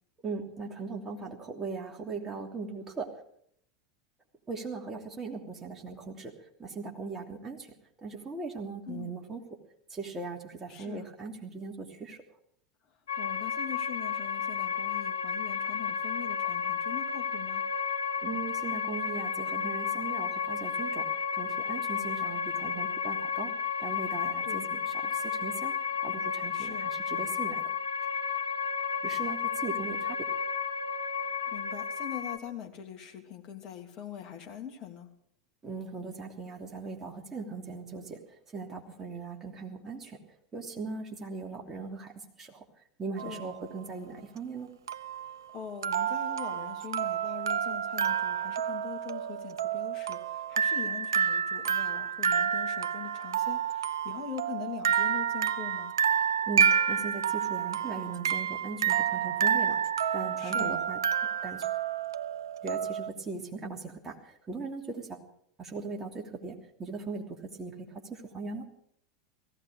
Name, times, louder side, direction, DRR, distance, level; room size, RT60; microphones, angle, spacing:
voice 1, 0.2-3.1 4.5-6.3 6.6-7.7 8.0-9.4 9.9-12.2 18.2-21.1 21.4-23.5 23.8-25.7 26.0-27.6 29.0-30.2 35.6-38.2 38.5-40.2 40.5-42.1 42.4-42.6 43.0-44.7 56.5-59.8 60.1-61.0 61.4-61.7 62.6-65.2 65.6-68.6, right 4 dB, 20° right, 1 dB, 3.0 m, -39 dB
voice 2, 10.7-11.1 13.2-17.6 24.4-24.7 26.5-26.9 31.5-35.1 43.2-43.5 45.5-56.0 60.4-60.8, left 9 dB, 35° left, 2 dB, 2.9 m, -42 dB
sound 1, 13.1-32.4, left 7 dB, 70° left, 1.3 m, -32 dB
sound 2, 43.2-43.6 44.9-63.1, right 8 dB, 70° right, 0.5 m, -29 dB
18.0 x 15.5 x 5.0 m, 0.68 s
figure-of-eight pair, 80°, 2 cm